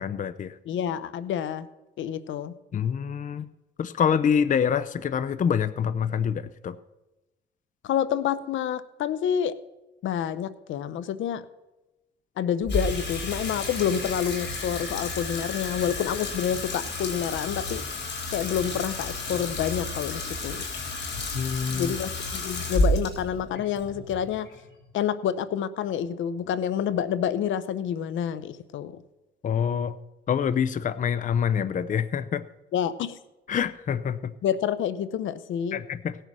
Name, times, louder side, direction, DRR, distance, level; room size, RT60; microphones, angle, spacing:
voice 1, 0.0-0.6 2.7-3.5 3.8-6.8 21.3-21.9 29.4-30.0 30.3-32.4 33.5-34.3 35.7-36.2, left 7 dB, 40° left, 14 dB, 0.6 m, -26 dB
voice 2, 0.7-1.7 2.0-2.5 7.8-9.6 10.0-11.4 12.4-17.8 18.3-20.7 21.7-24.5 24.9-29.0 32.7-33.2 34.4-35.8, left 9 dB, 75° left, 15 dB, 0.8 m, -28 dB
Water tap faucet / Sink (filling or washing), 12.6-25.0, left 2 dB, 60° left, 4.0 m, -31 dB
17.5 x 6.7 x 6.1 m, 1.0 s
cardioid pair, 90°, 20 cm